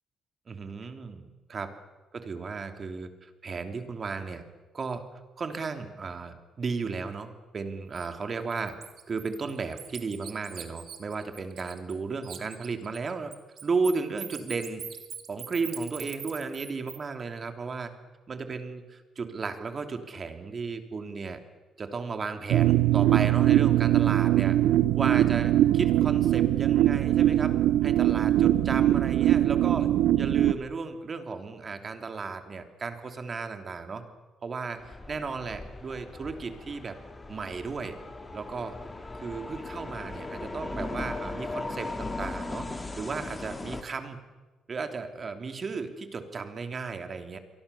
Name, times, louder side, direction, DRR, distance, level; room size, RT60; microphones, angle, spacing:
voice 1, 0.5-1.2 1.5-1.7 2.1-4.4 4.7-5.0 5.4-8.7 9.1-13.3 13.6-14.8 15.3-17.9 18.3-21.4 21.8-24.6 24.9-27.5 27.8-29.9 30.2-34.0 34.4-37.0 37.3-38.0 38.3-38.8 39.1-42.7 43.0-44.2 44.7-47.4, right 4 dB, 40° right, 7 dB, 3.0 m, -34 dB
Bird, 7.9-8.1 8.5-12.0 12.2-17.0, right 8 dB, 60° right, 2.7 m, -42 dB
sound 1, 22.5-30.5, right 13 dB, 85° right, 1.0 m, -22 dB
sound 2, 34.8-43.8, left 2 dB, 20° left, 2.8 m, -38 dB
29.0 x 23.5 x 7.0 m, 1.2 s
cardioid pair, 90°, 0 cm